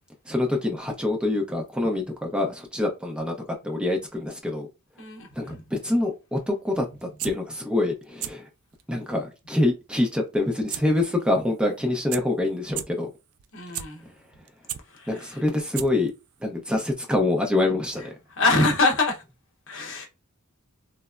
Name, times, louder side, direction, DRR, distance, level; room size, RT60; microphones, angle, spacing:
voice 1, 0.3-3.3 3.6-4.7 5.4-8.5 8.9-13.1 15.1-16.1 16.4-18.1, left 2 dB, 5° right, 0.5 m, -25 dB
voice 2, 5.0-5.6 13.5-14.0 14.9-15.4 18.3-19.2 19.7-20.1, left 3 dB, 65° left, 0.8 m, -25 dB
sound 1, 7.0-7.3 8.0-8.3 8.7-8.8 10.7-10.8 11.1-11.2 11.8-11.9 12.1-12.2 12.7-12.8 13.4-13.8 14.3-14.8 15.4-15.5 15.7-16.1 16.4-16.5, right 11 dB, 80° right, 0.3 m, -32 dB
3.3 x 2.0 x 2.3 m
head